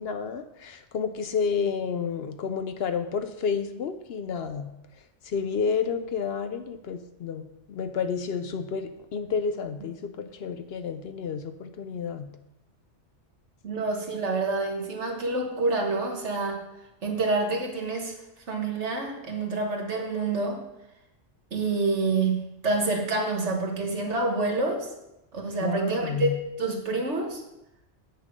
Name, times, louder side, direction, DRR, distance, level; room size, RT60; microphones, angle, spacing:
voice 1, 0.0-4.7 5.3-12.3 25.6-26.3, left 6 dB, 65° left, 9 dB, 0.8 m, -30 dB
voice 2, 13.6-16.6 17.0-18.1 18.5-20.6 21.5-24.9 25.3-26.3 26.6-27.4, right 3 dB, 70° right, 2 dB, 1.8 m, -27 dB
8.7 x 6.5 x 5.2 m, 0.90 s
omnidirectional pair, 1.2 m